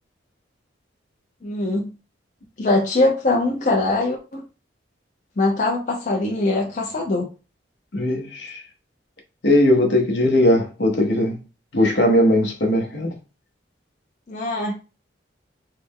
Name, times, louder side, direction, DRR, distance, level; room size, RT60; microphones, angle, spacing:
voice 1, 1.4-1.9 2.6-4.4 5.4-7.3 14.3-14.7, left 2 dB, 40° left, 0.5 m, -22 dB
voice 2, 7.9-8.6 9.4-11.4 11.7-13.1, left 1 dB, 65° left, 0.9 m, -19 dB
3.3 x 2.1 x 3.5 m
head